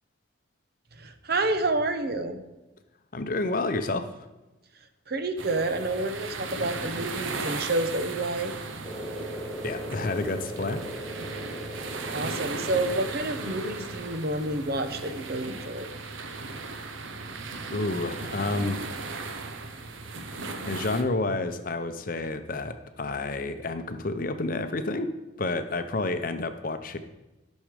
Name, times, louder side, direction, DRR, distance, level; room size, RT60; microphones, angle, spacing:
voice 1, 1.0-2.4 5.1-8.5 12.1-15.9, right 2 dB, 55° right, 8 dB, 0.9 m, -29 dB
voice 2, 3.1-4.0 9.6-10.8 17.7-18.8 20.6-25.1 25.4-27.0, left 2 dB, 45° left, 9 dB, 0.7 m, -29 dB
sound 1, 5.4-21.0, right 3 dB, 85° right, 0.9 m, -37 dB
sound 2, 8.8-15.2, right 1 dB, ahead, 1.9 m, -40 dB
12.0 x 6.4 x 5.0 m, 1.0 s
head